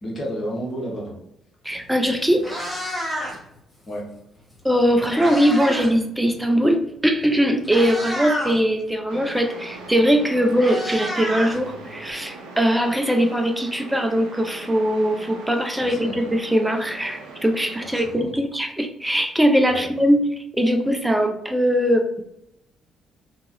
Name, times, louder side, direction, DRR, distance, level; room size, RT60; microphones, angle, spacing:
voice 1, 0.0-1.1 3.9-4.1 15.8-16.2 17.9-18.3 19.7-19.9, equal, 40° left, -2 dB, 1.3 m, -31 dB
voice 2, 1.6-2.5 4.6-20.3 20.5-22.2, equal, 10° right, 4 dB, 0.5 m, -21 dB
Meow, 1.8-1.9 2.3-3.6 4.6-6.0 6.2-6.5 7.2-7.3 7.6-8.6 9.9-10.0 10.2-12.1, equal, 10° left, 1.3 m, -29 dB
sound 1, 9.1-18.1, right 3 dB, 75° right, 0.5 m, -40 dB
2.9 x 2.4 x 2.6 m, 0.78 s
figure-of-eight pair, 45°, 0 cm